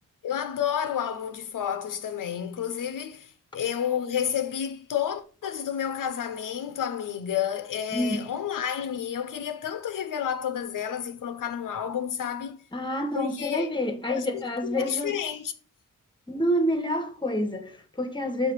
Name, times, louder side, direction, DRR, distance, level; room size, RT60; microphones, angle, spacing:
voice 1, 0.2-12.6 13.1-13.7 14.1-15.5, left 9 dB, 70° left, 0.7 m, -30 dB
voice 2, 7.9-8.3 12.7-15.1 16.3-18.5, equal, 15° left, 1.0 m, -28 dB
6.8 x 3.2 x 4.4 m
cardioid pair, 95°, 33 cm